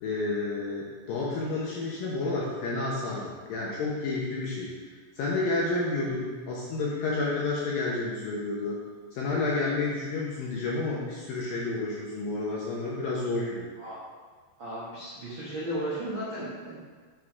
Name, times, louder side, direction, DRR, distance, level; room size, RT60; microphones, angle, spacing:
voice 1, 0.0-4.7 5.2-8.8 9.1-13.7, left 3 dB, 70° left, -5 dB, 2.2 m, -30 dB
voice 2, 14.6-16.8, right 1 dB, 75° right, -9 dB, 1.1 m, -35 dB
9.9 x 4.8 x 4.9 m, 1.5 s
omnidirectional pair, 5.3 m